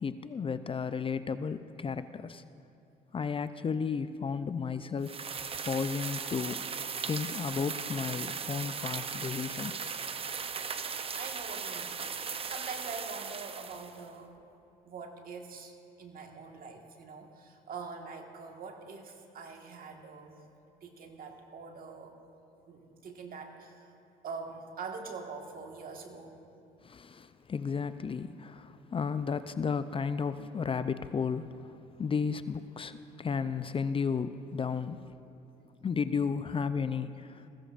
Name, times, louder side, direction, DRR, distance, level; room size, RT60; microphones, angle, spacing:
voice 1, 0.0-2.4 3.1-5.2 5.7-6.6 7.1-9.7 26.8-31.7 32.0-35.1 35.8-37.4, left 6 dB, 30° left, 12 dB, 0.4 m, -33 dB
sound 1, 5.0-14.0, right 6 dB, 30° right, 0.7 m, -38 dB
voice 2, 11.1-14.3 14.8-20.4 20.8-22.2 22.7-23.8 24.2-26.4, right 4 dB, 55° right, 3 dB, 1.6 m, -44 dB
20.5 x 15.5 x 2.5 m, 2.7 s
supercardioid pair, 75°, 18 cm